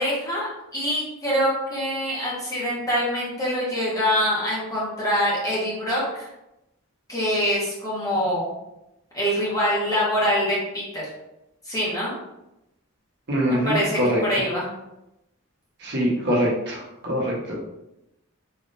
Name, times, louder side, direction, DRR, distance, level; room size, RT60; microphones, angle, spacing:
voice 1, 0.0-6.3 7.1-8.5 9.1-11.0 11.6-12.1 13.5-14.7, equal, 15° left, -7 dB, 1.5 m, -24 dB
voice 2, 13.3-14.2 15.8-16.8 17.0-17.5, equal, 55° right, -5 dB, 1.3 m, -23 dB
4.2 x 3.4 x 2.7 m, 0.90 s
head